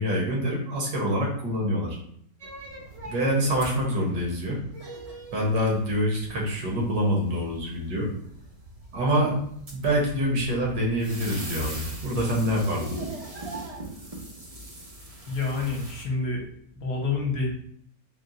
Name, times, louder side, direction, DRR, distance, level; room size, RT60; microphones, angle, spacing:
voice 1, 0.0-2.0 3.0-4.6 5.3-8.1 8.9-9.4 9.7-12.9, equal, 75° right, -2 dB, 1.7 m, -26 dB
sound 1, 2.4-16.0, right 2 dB, 50° right, 0.4 m, -40 dB
voice 2, 15.3-16.4 16.7-17.5, left 4 dB, 65° left, 0 dB, 1.3 m, -28 dB
4.4 x 2.1 x 3.8 m, 0.66 s
omnidirectional pair, 1.8 m